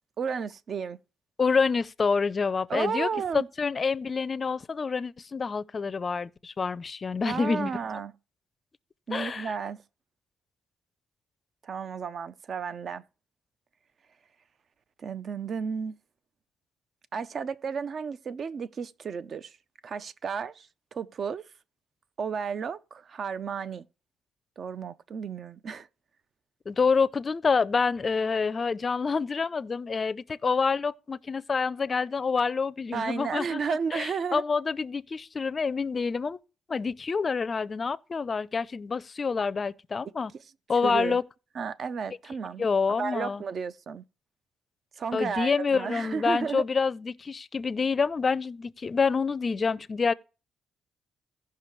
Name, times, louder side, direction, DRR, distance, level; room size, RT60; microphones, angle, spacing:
voice 1, 0.2-1.0 2.7-3.5 7.2-8.1 9.1-9.8 11.6-13.0 15.0-15.9 17.1-19.5 19.8-21.4 22.2-23.9 24.6-25.9 32.9-34.4 40.8-41.2 41.6-44.0 45.0-46.6, right 6 dB, 50° right, 0.5 m, -33 dB
voice 2, 1.4-7.7 9.1-9.5 26.7-36.4 36.7-40.3 40.7-41.2 42.6-43.4 45.1-50.1, left 5 dB, 35° left, 0.4 m, -27 dB
16.5 x 5.7 x 3.1 m
cardioid pair, 90°, 0 cm